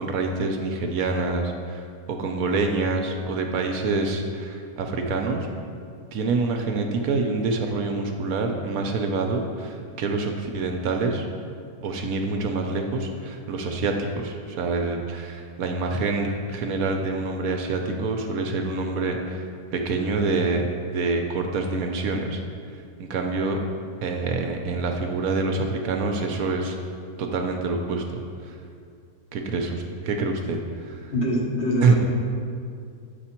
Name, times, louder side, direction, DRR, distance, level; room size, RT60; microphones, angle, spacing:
voice 1, 0.0-5.5 6.1-11.3 11.8-19.4 19.7-22.4 23.0-23.6 24.0-26.8 27.2-28.5 29.3-30.6 30.8-31.0 31.8-31.9, right 3 dB, 70° right, 3 dB, 1.0 m, -26 dB
voice 2, 31.1-31.9, left 1 dB, 50° left, -2 dB, 1.0 m, -24 dB
7.7 x 5.1 x 4.3 m, 2.3 s
omnidirectional pair, 1.7 m